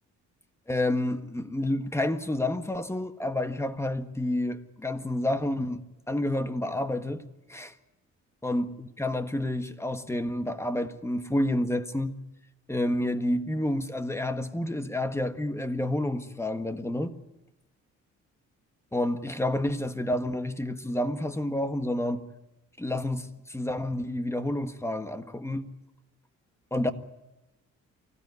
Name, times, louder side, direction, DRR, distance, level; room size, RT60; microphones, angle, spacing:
voice 1, 0.7-5.8 6.1-7.2 7.5-7.7 8.4-12.2 12.7-17.1 18.9-22.2 22.8-25.7 26.7-26.9, left 1 dB, 10° left, 1.6 m, -29 dB
24.5 x 16.0 x 9.7 m
cardioid pair, 90°, 30 cm